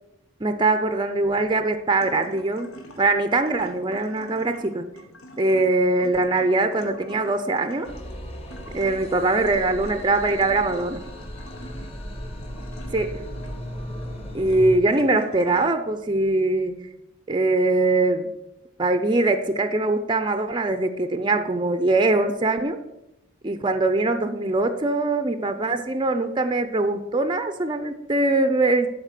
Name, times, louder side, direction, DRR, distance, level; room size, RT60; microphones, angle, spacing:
voice 1, 0.4-4.9 5.4-7.9 8.7-11.0 12.9-13.2 14.3-16.8 17.3-18.3 18.8-22.8 23.4-28.9, right 2 dB, 20° right, 9 dB, 0.5 m, -22 dB
sound 1, 1.4-15.7, left 1 dB, 80° left, 1.4 m, -46 dB
sound 2, 7.9-14.8, equal, 25° left, 1.1 m, -36 dB
11.5 x 4.2 x 6.7 m, 0.91 s
head